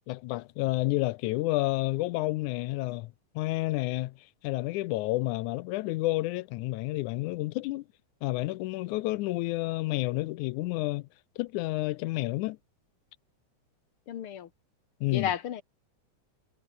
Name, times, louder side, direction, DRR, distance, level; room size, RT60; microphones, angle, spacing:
voice 1, 0.1-4.1 4.4-7.9 8.2-11.1 11.4-12.6 15.0-15.3, left 19 dB, 80° left, 2.0 m, -30 dB
voice 2, 14.1-14.5 15.1-15.6, left 9 dB, 60° left, 1.6 m, -32 dB
omnidirectional pair, 3.6 m